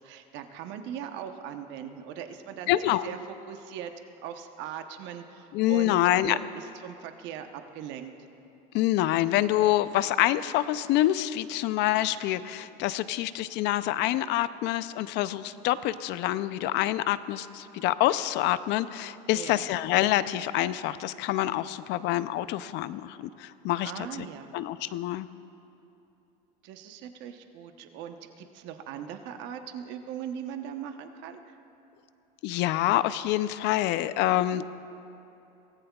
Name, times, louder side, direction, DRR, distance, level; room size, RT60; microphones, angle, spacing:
voice 1, 0.0-3.2 3.5-3.9 4.2-6.0 6.2-8.1 19.3-19.7 23.8-24.5 26.6-31.6, right 9 dB, 60° right, 6 dB, 1.0 m, -40 dB
voice 2, 2.7-3.1 5.5-6.4 8.7-23.9 24.5-25.3 32.4-34.7, left 14 dB, 55° left, 14 dB, 0.5 m, -26 dB
23.0 x 17.5 x 2.4 m, 2.9 s
supercardioid pair, 115°, 21 cm